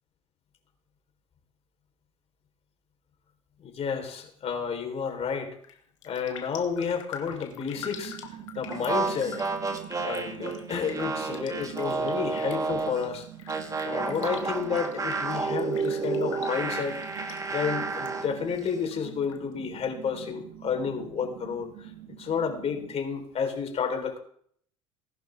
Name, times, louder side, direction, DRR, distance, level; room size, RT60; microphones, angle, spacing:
voice 1, 3.6-5.5 6.0-8.2 8.6-9.4 10.0-13.3 13.8-17.0 17.5-21.9 22.2-24.2, left 6 dB, 40° left, 5 dB, 3.8 m, -31 dB
Raindrop, 5.5-5.8 6.0-18.1 18.4-19.4 19.8-19.9, left 8 dB, 85° left, 1.5 m, -45 dB
sound 1, 7.7-23.0, right 11 dB, 60° right, 1.4 m, -45 dB
sound 2, 8.7-13.0 13.5-18.3, right 4 dB, 20° right, 1.9 m, -31 dB
19.0 x 11.0 x 3.5 m, 0.62 s
hypercardioid pair, 75°, 16 cm